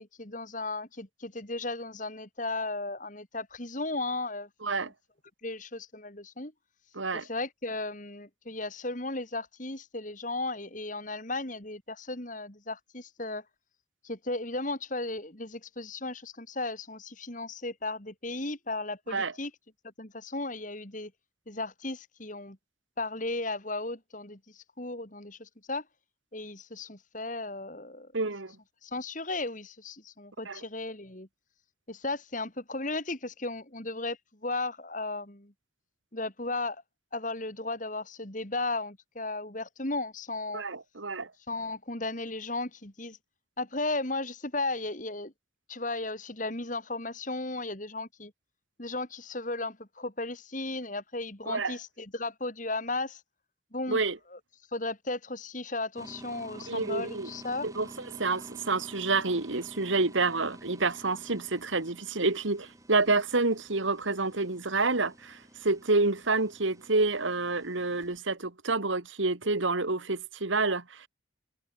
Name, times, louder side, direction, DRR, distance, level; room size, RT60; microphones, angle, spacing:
voice 1, 0.0-4.9 5.4-6.5 7.1-13.4 14.0-19.5 20.0-21.1 21.5-22.6 23.0-25.8 26.3-28.1 28.8-31.3 31.9-35.5 36.1-36.8 37.1-40.6 41.5-43.2 43.6-45.3 45.7-48.3 48.8-53.2 53.7-54.0 54.3-54.4 54.7-57.7, left 2 dB, 40° left, 3.1 m, -35 dB
voice 2, 4.6-4.9 6.9-7.3 19.1-19.3 28.1-28.6 30.5-30.6 40.5-41.3 51.5-51.8 53.9-54.2 56.6-57.3 57.6-71.1, right 3 dB, 80° right, 2.0 m, -28 dB
sound 1, 56.0-68.2, right 1 dB, 15° right, 3.5 m, -50 dB
head